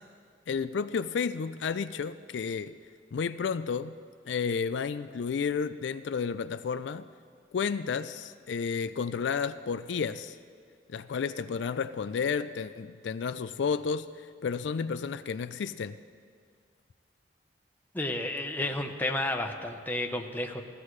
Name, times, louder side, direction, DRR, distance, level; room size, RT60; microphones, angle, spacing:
voice 1, 0.5-2.8 3.1-4.0 4.3-7.1 7.5-10.4 10.9-16.0, left 6 dB, 75° left, 0.4 m, -32 dB
voice 2, 17.9-20.6, left 1 dB, 10° left, 0.9 m, -31 dB
19.5 x 15.0 x 3.2 m
head